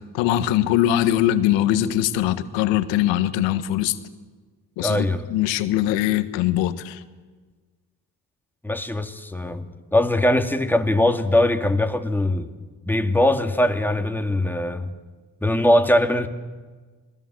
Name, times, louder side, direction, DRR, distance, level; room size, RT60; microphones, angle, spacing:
voice 1, 0.1-4.0 4.8-7.0, left 12 dB, 80° left, 12 dB, 1.6 m, -21 dB
voice 2, 4.8-5.2 8.6-12.5 12.9-14.9 15.4-16.3, left 1 dB, 5° left, 6 dB, 2.5 m, -21 dB
27.5 x 20.5 x 7.9 m, 1.4 s
hypercardioid pair, 55°, 43 cm